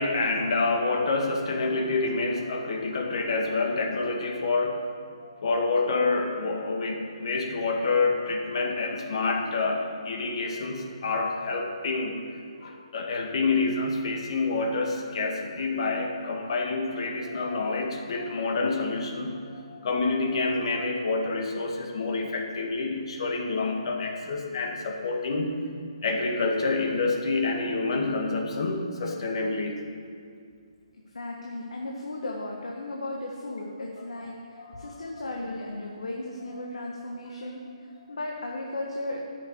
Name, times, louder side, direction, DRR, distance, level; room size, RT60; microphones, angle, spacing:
voice 1, 0.0-4.8 5.2-12.2 12.6-25.5 26.0-29.8 34.6-34.9, left 3 dB, 55° left, 2 dB, 1.9 m, -28 dB
voice 2, 31.1-39.2, left 2 dB, 85° left, -1 dB, 1.5 m, -36 dB
9.8 x 7.0 x 8.2 m, 2.2 s
hypercardioid pair, 150°, 3 cm